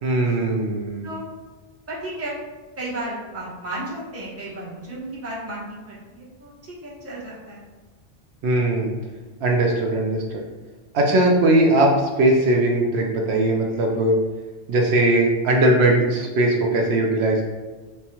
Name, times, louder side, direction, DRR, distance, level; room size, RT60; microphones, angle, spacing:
voice 1, 0.0-1.1 8.4-8.9 9.4-10.4 10.9-14.2 14.7-17.5, right 1 dB, 75° right, 0 dB, 0.8 m, -19 dB
voice 2, 1.9-2.4 2.8-7.7, right 1 dB, 15° right, -7 dB, 0.8 m, -34 dB
4.3 x 2.2 x 2.8 m, 1.3 s
omnidirectional pair, 1.1 m